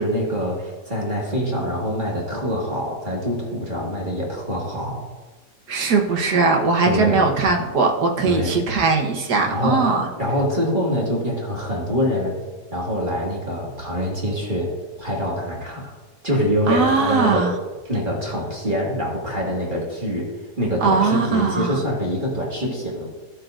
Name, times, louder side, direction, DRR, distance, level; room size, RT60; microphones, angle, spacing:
voice 1, 0.0-5.1 6.9-7.3 8.2-8.6 9.5-9.9 10.2-12.4 12.7-14.7 15.0-15.9 16.2-17.5 17.9-20.3 20.6-23.0, equal, 30° right, -3 dB, 1.9 m, -24 dB
voice 2, 5.7-10.1 16.7-17.5 20.8-21.8, right 4 dB, 65° right, 1 dB, 1.7 m, -20 dB
15.0 x 7.6 x 2.5 m, 1.2 s
omnidirectional pair, 1.9 m